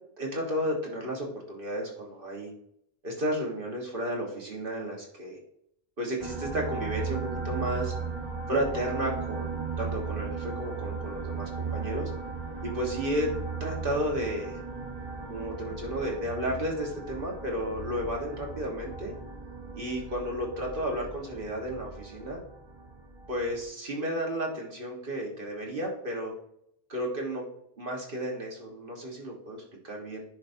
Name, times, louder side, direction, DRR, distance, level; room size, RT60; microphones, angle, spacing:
voice 1, 0.2-2.5 3.0-5.4 6.0-7.9 8.5-12.1 12.6-13.3 13.6-14.6 15.3-19.1 19.7-22.4 23.3-26.3 26.9-27.4 27.8-30.2, equal, 55° right, -1 dB, 1.7 m, -33 dB
sound 1, 6.2-23.6, right 4 dB, 25° right, 1.2 m, -37 dB
10.5 x 5.2 x 2.7 m, 0.70 s
omnidirectional pair, 1.1 m